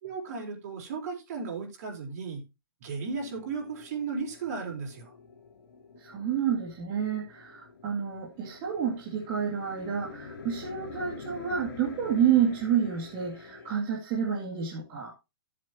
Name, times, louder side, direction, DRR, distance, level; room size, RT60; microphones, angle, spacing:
voice 1, 0.0-2.4 2.8-5.1, right 4 dB, 45° right, 4.0 m, -35 dB
sound 1, 2.9-13.7, left 4 dB, 80° left, 2.7 m, -47 dB
voice 2, 6.0-15.1, right 8 dB, 30° right, 2.3 m, -29 dB
14.0 x 7.7 x 2.8 m
hypercardioid pair, 155°, 12 cm